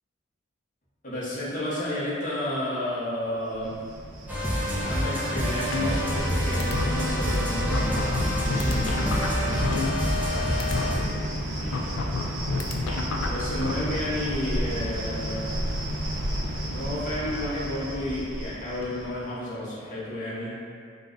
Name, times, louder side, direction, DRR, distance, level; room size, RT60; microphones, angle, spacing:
voice 1, 1.0-3.8 4.8-12.0 12.9-15.5 16.6-20.6, left 1 dB, 40° left, -8 dB, 0.7 m, -32 dB
Cricket, 3.5-19.2, equal, 65° right, 0.5 m, -32 dB
sound 1, 4.3-11.0, equal, 10° right, 0.3 m, -27 dB
sound 2, 5.7-6.3 6.6-6.8 7.3-7.4 7.7-10.3 10.6-10.8 11.7-13.7, left 4 dB, 80° left, 0.3 m, -30 dB
2.5 x 2.0 x 3.6 m, 2.2 s
head